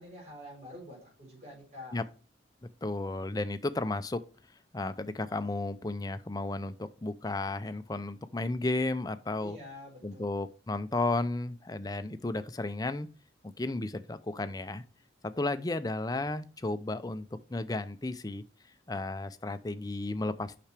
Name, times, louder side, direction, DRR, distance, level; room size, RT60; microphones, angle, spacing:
voice 1, 0.0-2.0 9.4-10.3, left 1 dB, 35° right, 4.4 m, -47 dB
voice 2, 2.8-4.2 4.7-9.6 10.0-13.1 13.6-14.8 15.2-18.4 18.9-20.6, left 2 dB, 20° left, 0.5 m, -33 dB
8.5 x 5.9 x 3.4 m
head